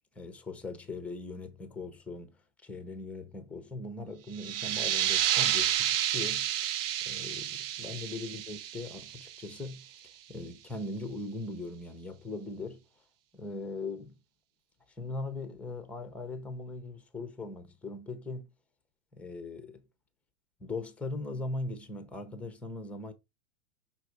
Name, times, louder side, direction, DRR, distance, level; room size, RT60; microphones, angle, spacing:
voice 1, 0.2-2.4 2.6-6.5 7.0-9.9 10.3-12.8 13.3-14.1 15.0-18.5 19.1-19.8 20.6-23.1, left 2 dB, 5° left, 0.5 m, -40 dB
sound 1, 4.3-9.7, right 11 dB, 50° right, 0.5 m, -30 dB
5.8 x 4.0 x 4.7 m
hypercardioid pair, 145°, 38 cm